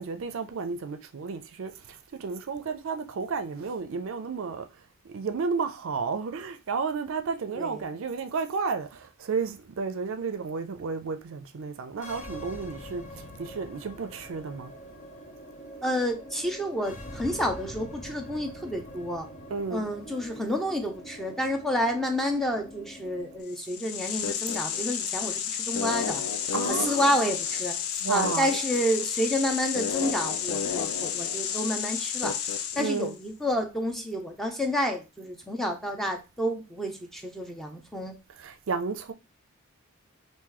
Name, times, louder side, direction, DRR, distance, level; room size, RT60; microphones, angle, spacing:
voice 1, 0.0-4.7 5.0-14.7 19.5-19.8 26.5-27.1 28.0-28.5 32.8-33.1 38.4-39.1, right 5 dB, 65° right, 0.4 m, -32 dB
sound 1, 11.9-23.4, equal, 35° left, 0.7 m, -44 dB
voice 2, 15.8-19.3 19.7-26.2 26.7-27.8 28.1-32.3 32.8-38.2, equal, ahead, 0.6 m, -29 dB
sound 2, 23.5-33.1, left 8 dB, 90° left, 0.5 m, -31 dB
3.0 x 2.6 x 3.7 m
head